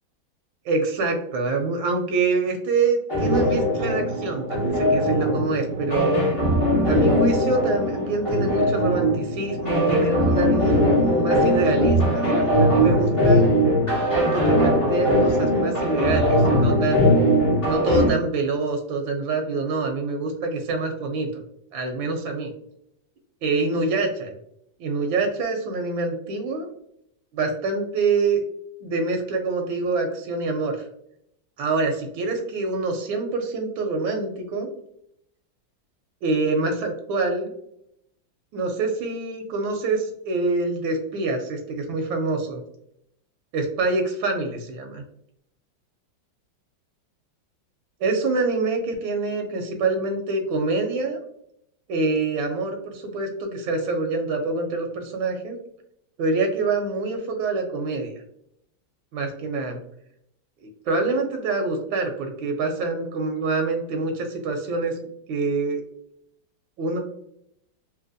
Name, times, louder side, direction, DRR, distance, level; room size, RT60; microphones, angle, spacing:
voice 1, 0.6-6.1 6.9-13.5 14.1-17.1 17.7-21.4 21.7-22.5 23.4-24.3 24.8-26.7 27.3-28.4 28.8-30.9 31.6-34.7 36.2-37.5 38.5-42.6 43.5-45.0 48.0-51.2 51.9-55.6 56.2-58.1 59.1-59.8 60.6-65.0 65.3-65.8 66.8-67.0, right 3 dB, 80° right, 3 dB, 1.3 m, -26 dB
sound 1, 3.1-18.1, equal, 25° left, 0.7 m, -20 dB
3.3 x 2.8 x 2.5 m, 0.75 s
omnidirectional pair, 2.1 m